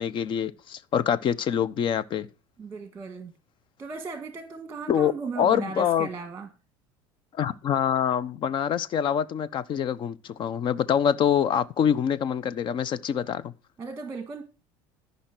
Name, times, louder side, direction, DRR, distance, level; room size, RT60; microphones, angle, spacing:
voice 1, 0.0-2.3 4.9-6.1 7.3-13.5, left 8 dB, 45° left, 0.9 m, -25 dB
voice 2, 2.6-3.3 3.8-6.5 13.8-14.4, right 4 dB, 20° right, 1.7 m, -36 dB
13.5 x 5.7 x 6.1 m
supercardioid pair, 110°, 11 cm